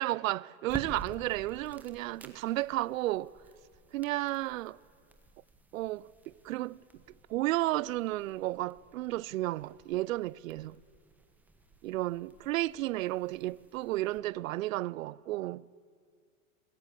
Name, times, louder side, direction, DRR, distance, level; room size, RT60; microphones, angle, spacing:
voice 1, 0.0-3.3 3.9-4.8 5.7-6.8 7.3-10.8 11.8-15.6, right 17 dB, 85° right, 0.5 m, -33 dB
sound 1, 0.6-14.2, right 2 dB, 5° right, 1.2 m, -52 dB
20.0 x 15.5 x 9.9 m
supercardioid pair, 150°, 39 cm